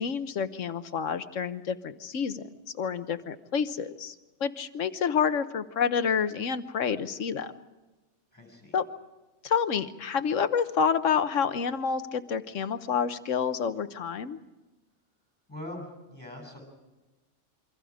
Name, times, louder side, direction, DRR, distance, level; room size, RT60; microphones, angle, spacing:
voice 1, 0.0-2.5 2.8-4.1 4.4-7.5 8.7-8.8 9.4-14.4, left 7 dB, 85° left, 12 dB, 1.4 m, -28 dB
voice 2, 8.3-8.8 15.5-16.6, left 1 dB, 10° left, 2 dB, 7.6 m, -42 dB
28.0 x 24.0 x 5.0 m, 1.1 s
omnidirectional pair, 1.3 m